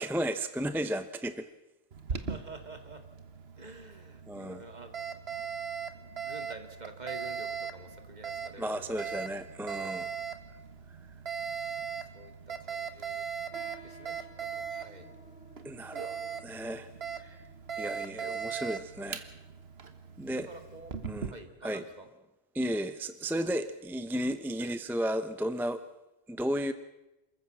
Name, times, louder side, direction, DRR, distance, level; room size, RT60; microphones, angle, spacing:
voice 1, 0.0-1.5 3.6-3.7 4.3-4.6 8.6-10.1 15.6-16.9 17.2-17.4 17.8-19.3 20.2-20.5 21.0-21.3 21.6-21.8 22.5-25.8 26.3-26.7, equal, ahead, 11 dB, 0.7 m, -34 dB
Alarm, 1.9-21.3, right 6 dB, 75° right, 1.5 m, -39 dB
voice 2, 2.1-3.0 3.6-4.9 5.2-5.5 5.9-9.1 11.6-11.8 12.1-13.3 13.5-15.1 20.3-20.9 21.3-22.1 24.6-24.7, right 2 dB, 40° right, 7 dB, 2.1 m, -49 dB
sound 1, 13.5-21.3, right 1 dB, 65° left, 2.5 m, -57 dB
27.0 x 14.5 x 7.4 m, 1.0 s
omnidirectional pair, 1.1 m